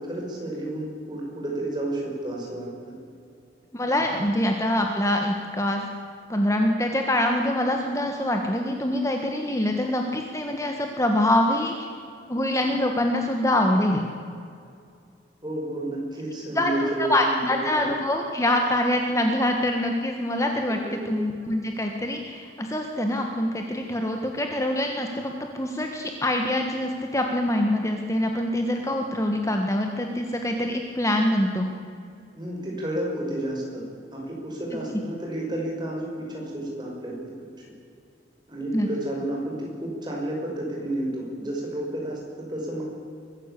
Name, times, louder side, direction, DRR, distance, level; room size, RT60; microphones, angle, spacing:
voice 1, 0.0-2.9 15.4-17.9 20.8-21.1 32.4-33.8 34.1-37.2 38.5-42.8, right 1 dB, 25° right, -2 dB, 6.0 m, -31 dB
voice 2, 3.7-5.9 6.3-11.9 12.3-14.1 16.5-20.8 21.0-31.7 38.7-38.9, left 1 dB, 15° left, 3 dB, 1.4 m, -25 dB
23.0 x 15.0 x 8.4 m, 2.4 s
head